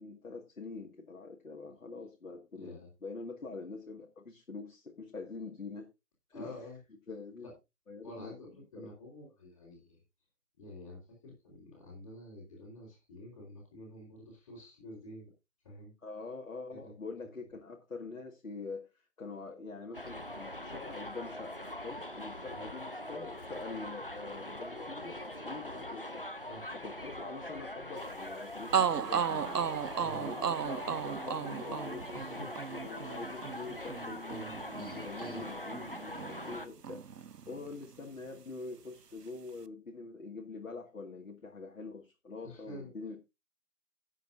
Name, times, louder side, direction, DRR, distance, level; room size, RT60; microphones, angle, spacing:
voice 1, 0.0-5.9 6.3-6.5 7.1-7.5 7.9-8.3 8.8-8.9 16.0-26.2 26.7-29.6 30.1-43.2, left 3 dB, 60° left, 2.2 m, -45 dB
voice 2, 2.5-2.9 6.3-6.8 7.4-7.5 8.0-10.0 10.6-15.3 15.6-15.9 16.7-16.9 17.2-17.3 22.5-22.7 26.4-26.6 28.7-28.8 29.9-30.2 32.1-32.5 35.0-35.5 42.4-42.9, left 1 dB, 10° left, 3.1 m, -49 dB
Subway metro underground, 19.9-36.7, left 1 dB, 35° left, 0.6 m, -43 dB
sound 1, 28.3-28.4 28.7-36.6 36.8-38.0, right 7 dB, 85° right, 0.7 m, -35 dB
17.0 x 7.4 x 2.6 m
figure-of-eight pair, 170°, 46 cm